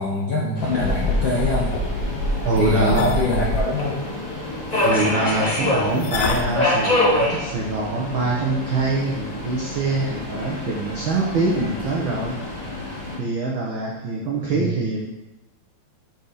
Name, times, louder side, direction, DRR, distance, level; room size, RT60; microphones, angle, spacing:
voice 1, 0.0-1.7 2.6-4.0 4.7-4.8 14.5-14.7, left 2 dB, 75° left, -6 dB, 1.1 m, -23 dB
Subway metro underground, 0.5-13.2, left 1 dB, 30° left, 0.7 m, -27 dB
sound 1, 0.8-3.6 6.0-6.5, left 1 dB, 90° left, 2.1 m, -25 dB
voice 2, 2.4-3.1 4.8-12.3 13.2-15.1, right 3 dB, 80° right, -3 dB, 1.1 m, -24 dB
6.4 x 4.1 x 4.0 m, 0.97 s
omnidirectional pair, 3.3 m